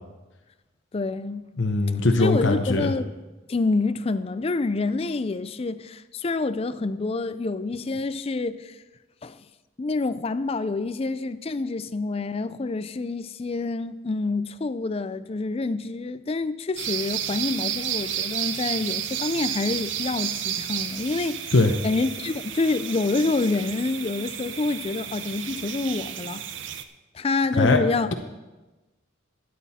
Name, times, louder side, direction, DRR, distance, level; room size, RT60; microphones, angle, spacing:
voice 1, 0.9-1.4 2.2-3.1 3.5-8.7 9.2-9.4 9.8-21.5 21.8-26.4 27.1-28.1, left 3 dB, 30° left, 13 dB, 0.4 m, -27 dB
voice 2, 1.6-2.9 21.5-21.7 27.5-27.8, left 2 dB, 65° left, 4 dB, 0.8 m, -20 dB
sound 1, 16.8-26.8, right 10 dB, 70° right, 0.6 m, -32 dB
12.5 x 9.3 x 4.2 m, 1.2 s
head